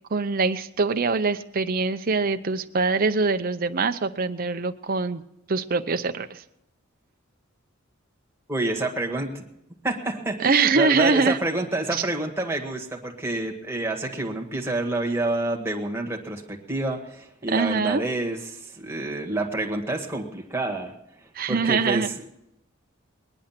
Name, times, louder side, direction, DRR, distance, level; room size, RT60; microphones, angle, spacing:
voice 1, 0.1-5.2 5.5-6.4 10.4-11.4 11.9-12.0 17.5-18.0 21.3-22.1, right 4 dB, 45° right, 9 dB, 0.7 m, -23 dB
voice 2, 8.5-9.4 9.8-20.9 21.5-22.3, right 2 dB, 10° right, 0 dB, 1.7 m, -28 dB
20.5 x 10.5 x 5.8 m, 0.84 s
head